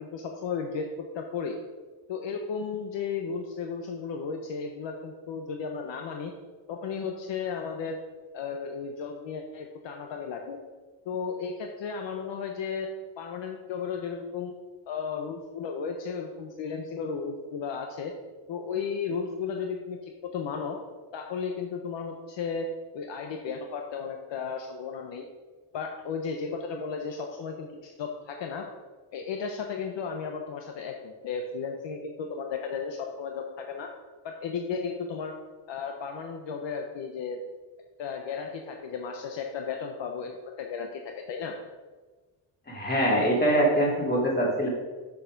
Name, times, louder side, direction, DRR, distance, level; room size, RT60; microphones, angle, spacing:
voice 1, 0.0-1.6 2.1-6.3 6.7-8.0 8.3-10.6 11.1-12.9 13.2-14.5 14.9-18.1 18.5-20.8 21.1-22.7 22.9-25.3 25.7-28.7 29.1-33.9 34.2-35.3 35.7-37.4 38.0-41.6, left 5 dB, 80° left, 3 dB, 0.9 m, -34 dB
voice 2, 42.7-44.7, right 1 dB, 20° left, -3 dB, 2.5 m, -23 dB
6.9 x 6.7 x 5.2 m, 1.3 s
cardioid pair, 120°, 43 cm